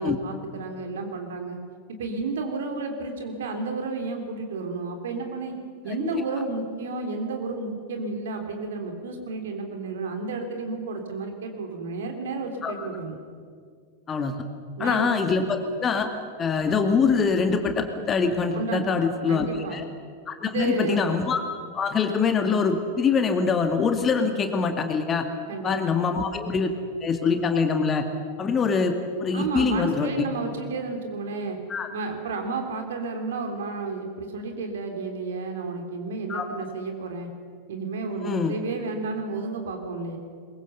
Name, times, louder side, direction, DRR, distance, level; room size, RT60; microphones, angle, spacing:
voice 1, 0.0-1.6 2.0-5.5 5.8-13.2 14.8-15.1 15.3-15.5 18.5-19.0 19.3-19.8 20.4-21.1 25.5-25.9 29.3-31.6 31.9-37.3 37.7-40.2, right 3 dB, 60° right, 4 dB, 3.2 m, -31 dB
voice 2, 14.1-14.4 14.8-16.1 16.4-19.8 20.3-21.4 21.7-25.3 25.6-26.7 27.0-28.1 28.4-29.0 29.2-30.1 31.7-31.9 36.3-36.4 38.2-38.5, left 5 dB, 25° left, 6 dB, 1.9 m, -24 dB
22.5 x 22.5 x 6.9 m, 2.1 s
figure-of-eight pair, 90°, 0 cm